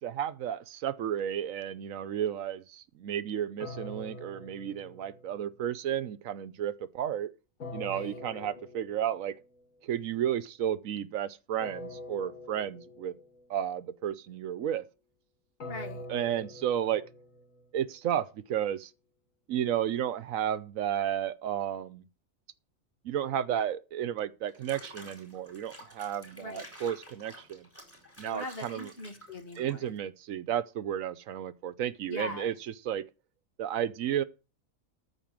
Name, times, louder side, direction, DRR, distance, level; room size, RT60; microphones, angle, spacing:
voice 1, 0.0-7.3 7.7-9.4 9.8-13.1 13.5-14.9 16.1-17.1 17.7-18.9 19.5-22.0 23.0-27.7 28.2-28.9 29.6-32.5 32.8-33.1 33.6-34.2, right 10 dB, 75° right, 1.1 m, -32 dB
sound 1, 3.6-5.7 7.6-9.4 11.6-13.4 15.6-17.8, left 1 dB, 80° left, 2.2 m, -44 dB
voice 2, 7.9-8.6 15.6-16.0 26.3-26.6 28.2-29.9 32.1-32.5, left 2 dB, 45° left, 1.8 m, -41 dB
Water / Bathtub (filling or washing), 24.5-30.0, equal, 10° left, 4.4 m, -50 dB
13.5 x 4.6 x 7.5 m
omnidirectional pair, 1.4 m